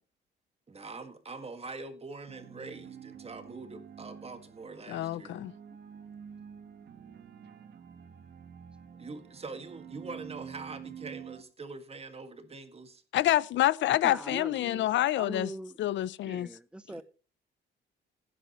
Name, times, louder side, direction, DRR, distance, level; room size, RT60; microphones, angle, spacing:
voice 1, 0.7-5.4 9.0-13.0 16.9-17.0, right 3 dB, 30° right, 1.8 m, -44 dB
sound 1, 2.3-11.4, right 8 dB, 60° right, 1.4 m, -48 dB
voice 2, 4.9-5.5 13.1-15.5 15.8-16.5, left 13 dB, 70° left, 0.5 m, -27 dB
voice 3, 14.0-15.8 16.2-17.0, right 1 dB, 5° right, 0.7 m, -42 dB
16.0 x 9.8 x 3.0 m
cardioid pair, 90°, 20 cm